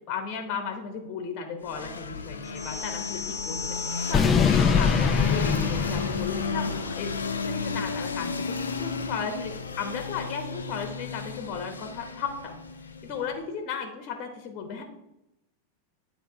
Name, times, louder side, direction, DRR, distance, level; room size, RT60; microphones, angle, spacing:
voice 1, 0.1-3.6 4.1-7.2 7.4-12.5 13.0-14.8, left 6 dB, 35° left, 5 dB, 1.0 m, -35 dB
sound 1, 1.6-13.4, left 4 dB, 70° left, 0.6 m, -33 dB
sound 2, 2.6-6.9, left 6 dB, 20° left, 0.3 m, -25 dB
9.8 x 3.4 x 4.7 m, 0.94 s
figure-of-eight pair, 90°, 0 cm